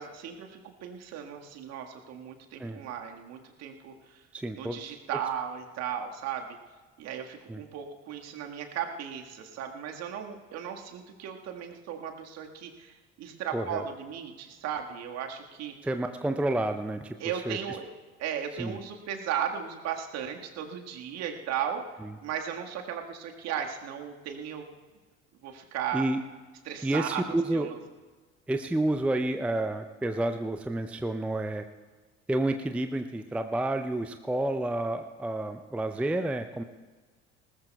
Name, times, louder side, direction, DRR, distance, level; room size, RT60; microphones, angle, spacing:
voice 1, 0.0-4.2 4.6-6.5 7.0-15.7 17.2-17.9 18.2-21.8 22.2-24.7 25.4-26.0 26.7-27.2 27.5-27.8, right 8 dB, 45° right, 3 dB, 1.7 m, -36 dB
voice 2, 4.3-4.9 7.5-7.6 13.5-13.8 15.8-17.2 17.5-17.6 18.6-18.8 22.0-22.1 25.9-26.2 26.8-27.7 28.5-31.7 32.3-36.6, right 1 dB, 5° right, 7 dB, 0.5 m, -30 dB
20.0 x 19.0 x 2.3 m, 1.3 s
figure-of-eight pair, 60°, 35 cm